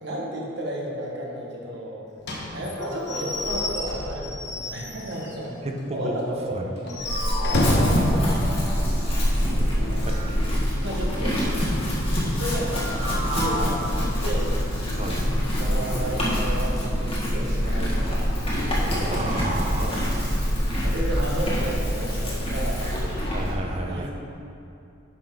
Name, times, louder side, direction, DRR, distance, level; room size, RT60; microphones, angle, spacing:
voice 1, 0.0-2.0 2.5-5.6 5.9-8.3 9.3-10.0 10.8-11.6 12.4-14.5 15.0-15.1 15.6-18.3 18.7-19.3 19.7-20.0 20.8-23.0 23.9-24.1, right 1 dB, 65° right, -3 dB, 1.5 m, -33 dB
Slam / Squeak / Wood, 2.2-5.4 5.8-5.9 6.2-6.3 6.8-8.1, left 1 dB, 60° left, 1.2 m, -28 dB
sound 1, 2.8-4.8 7.1-9.7 12.7-13.8, equal, 5° left, 1.7 m, -34 dB
Chewing mastication / Livestock farm animals working animals, 7.0-23.6, equal, 30° left, 1.6 m, -25 dB
voice 2, 10.1-10.5 15.0-15.3 19.1-20.1 23.3-24.1, right 1 dB, 35° right, 2 dB, 0.8 m, -32 dB
10.0 x 5.8 x 3.7 m, 2.6 s
head